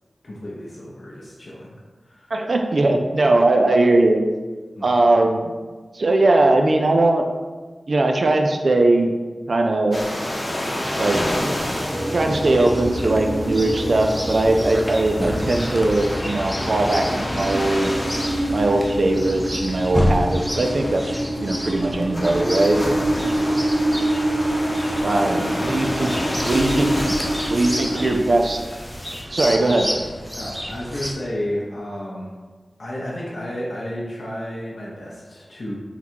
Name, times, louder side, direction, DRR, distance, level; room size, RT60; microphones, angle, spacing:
voice 1, 0.2-1.8 2.0-2.3 4.7-5.0 23.2-23.5 24.9-25.5 26.0-26.5 26.9-27.2 27.5-28.1 30.4-32.3 32.8-35.7, left 1 dB, 65° left, -5 dB, 0.7 m, -32 dB
voice 2, 2.3-4.2 4.8-5.5 5.9-7.2 7.9-9.1 9.5-10.0 11.0-11.2 12.1-17.9 18.5-21.1 21.4-22.8 25.0-26.1 26.5-26.9 27.5-28.6 29.3-29.9, right 2 dB, 65° right, 3 dB, 0.4 m, -19 dB
sound 1, 9.9-29.2, left 1 dB, 30° left, 0.8 m, -30 dB
sound 2, 11.9-28.2, right 1 dB, 35° right, 1.5 m, -27 dB
Chirp tweet, 12.2-31.1, equal, 5° left, 0.6 m, -30 dB
3.7 x 2.3 x 4.4 m, 1.4 s
wide cardioid pair, 55°, 0 cm